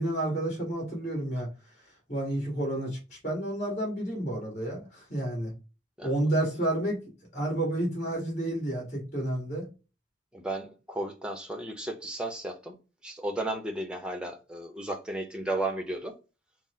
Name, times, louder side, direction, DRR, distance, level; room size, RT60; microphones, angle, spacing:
voice 1, 0.0-1.5 2.1-3.0 3.2-5.5 6.0-7.0 7.3-9.6, right 1 dB, 35° left, 1.9 m, -30 dB
voice 2, 10.3-12.8 13.0-16.1, right 1 dB, 5° right, 0.7 m, -34 dB
6.0 x 2.0 x 3.6 m
head